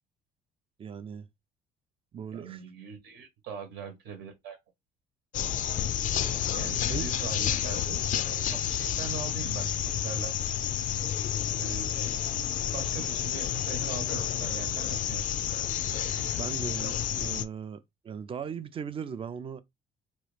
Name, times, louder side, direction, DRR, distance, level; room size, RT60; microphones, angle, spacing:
voice 1, 0.8-1.3 2.1-2.6 6.9-7.1 16.3-19.6, right 7 dB, 35° right, 0.4 m, -38 dB
voice 2, 2.3-4.6 6.5-8.0 8.5-10.3 11.6-12.0 12.7-15.2, right 6 dB, 85° right, 1.0 m, -41 dB
sound 1, 5.3-17.4, left 10 dB, 50° left, 0.4 m, -30 dB
3.0 x 2.3 x 3.2 m
cardioid pair, 110°, 17 cm